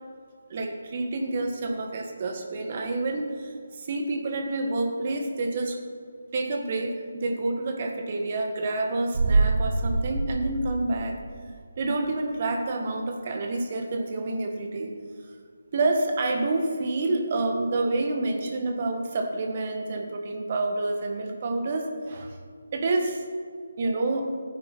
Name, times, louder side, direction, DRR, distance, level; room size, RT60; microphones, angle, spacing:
voice 1, 0.5-5.8 6.3-11.2 11.8-15.0 15.7-22.3 22.7-23.2 23.8-24.3, right 2 dB, 35° right, 3 dB, 1.7 m, -28 dB
sound 1, 9.1-11.8 12.1-12.2, right 3 dB, 50° right, 0.8 m, -26 dB
16.0 x 9.8 x 4.2 m, 2.1 s
figure-of-eight pair, 150°, 0 cm